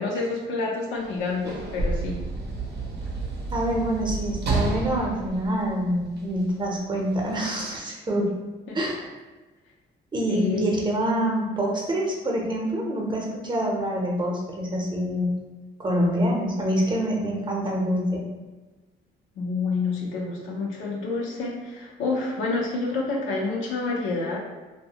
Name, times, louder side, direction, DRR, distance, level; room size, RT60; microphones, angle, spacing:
voice 1, 0.0-2.2 8.7-8.8 10.3-10.7 19.4-24.4, left 3 dB, 85° left, -3 dB, 0.6 m, -28 dB
Sliding door / Slam, 1.0-6.4 7.3-7.4, right 2 dB, 60° right, 0.6 m, -30 dB
voice 2, 3.5-8.3 8.7-9.1 10.1-15.3 15.8-18.3, equal, 25° right, -1 dB, 0.7 m, -26 dB
2.6 x 2.2 x 2.8 m, 1.2 s
cardioid pair, 90°, 20 cm